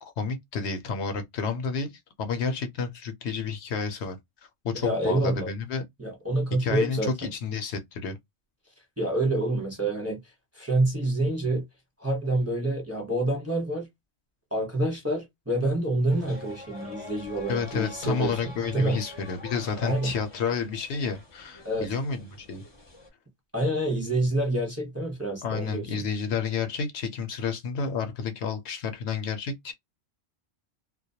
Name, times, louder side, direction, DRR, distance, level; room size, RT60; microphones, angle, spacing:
voice 1, 0.0-4.2 4.6-5.8 6.6-8.2 17.5-22.6 25.4-29.7, left 5 dB, 70° left, 0.8 m, -30 dB
voice 2, 4.7-5.5 6.0-7.1 9.0-10.2 10.5-11.6 12.0-13.9 14.5-18.4 18.7-19.0 19.8-20.1 21.6-21.9 23.5-25.8, right 1 dB, 15° right, 0.8 m, -27 dB
sound 1, 16.1-23.1, left 1 dB, 30° left, 0.6 m, -45 dB
2.2 x 2.1 x 2.7 m
omnidirectional pair, 1.2 m